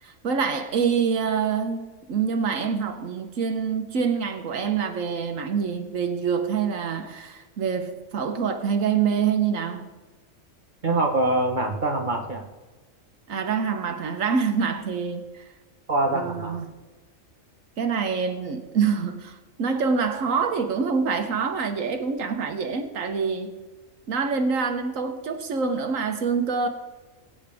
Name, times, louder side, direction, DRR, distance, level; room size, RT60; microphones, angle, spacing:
voice 1, 0.0-9.9 13.3-15.5 16.1-16.7 17.8-23.6 24.1-26.7, right 6 dB, 80° right, 6 dB, 1.4 m, -26 dB
voice 2, 10.8-12.5 15.9-16.6, right 2 dB, 40° right, 1 dB, 1.4 m, -24 dB
21.0 x 8.8 x 3.5 m, 1.3 s
omnidirectional pair, 1.4 m